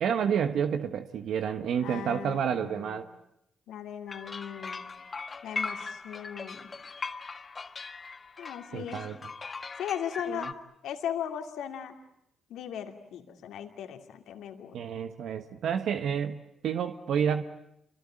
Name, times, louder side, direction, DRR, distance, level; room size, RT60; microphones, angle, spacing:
voice 1, 0.0-3.1 8.7-9.2 10.3-10.5 14.7-17.4, right 8 dB, 75° right, 9 dB, 1.3 m, -29 dB
voice 2, 1.8-3.0 3.7-4.9 5.4-6.7 8.4-9.1 9.8-10.5 10.8-12.0 12.5-14.8, left 9 dB, 80° left, 6 dB, 2.7 m, -38 dB
sound 1, 4.1-10.5, left 4 dB, 40° left, 1.7 m, -39 dB
27.5 x 24.5 x 8.8 m, 0.77 s
supercardioid pair, 60°, 0 cm